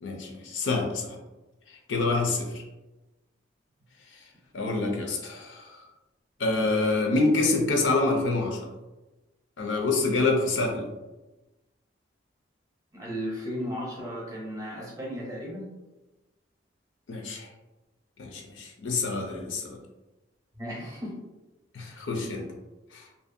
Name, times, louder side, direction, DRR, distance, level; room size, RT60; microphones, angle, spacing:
voice 1, 0.0-1.2 1.7-2.6 4.5-5.8 6.4-8.7 9.6-10.9 17.1-17.5 18.2-19.8 21.7-22.5 22.9-23.1, left 3 dB, 80° left, 1 dB, 0.5 m, -27 dB
voice 2, 12.9-15.7 20.6-21.2, equal, 20° right, -4 dB, 0.6 m, -35 dB
2.6 x 2.1 x 2.5 m, 1.1 s
head